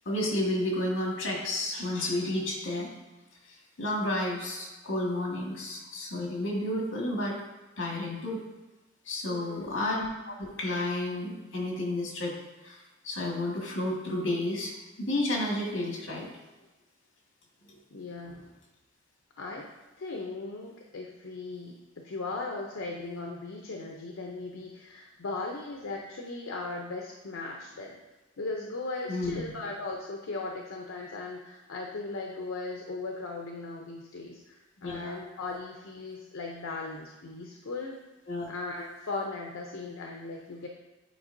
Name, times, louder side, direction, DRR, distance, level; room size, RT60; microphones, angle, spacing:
voice 1, 0.1-2.9 3.5-7.4 7.8-8.4 9.1-12.4 12.6-16.3 17.7-17.8 29.1-29.4 34.8-35.2 38.3-38.5, left 1 dB, 70° left, -2 dB, 1.7 m, -31 dB
voice 2, 9.3-9.8 17.9-18.5 19.4-19.6 20.0-21.7 22.0-28.0 28.4-38.0 38.5-40.7, left 3 dB, 85° left, 0 dB, 0.6 m, -38 dB
9.2 x 4.4 x 2.6 m, 1.1 s
head